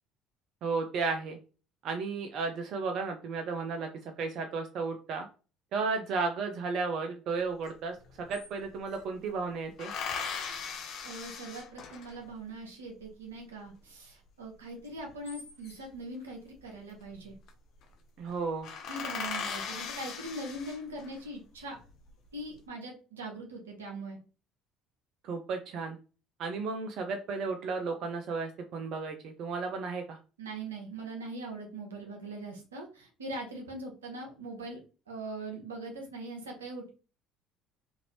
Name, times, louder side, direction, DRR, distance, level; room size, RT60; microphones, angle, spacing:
voice 1, 0.6-1.4 1.8-3.9 4.2-5.3 5.7-9.9 18.2-18.7 25.2-26.0 26.4-30.2, right 4 dB, 60° right, 4 dB, 0.4 m, -33 dB
sound 1, 7.7-7.8 8.0-9.0 9.8-12.3 15.0-16.0 17.1-17.5 17.8-17.9 18.3-18.4 18.6-21.2 21.8-22.4, left 6 dB, 60° left, 0.6 m, -39 dB
voice 2, 11.0-17.3 18.9-21.8 22.3-24.2 30.4-34.8 35.1-36.9, right 2 dB, 90° right, 1 dB, 0.8 m, -41 dB
2.9 x 2.6 x 2.9 m, 0.35 s
hypercardioid pair, 60°, 0 cm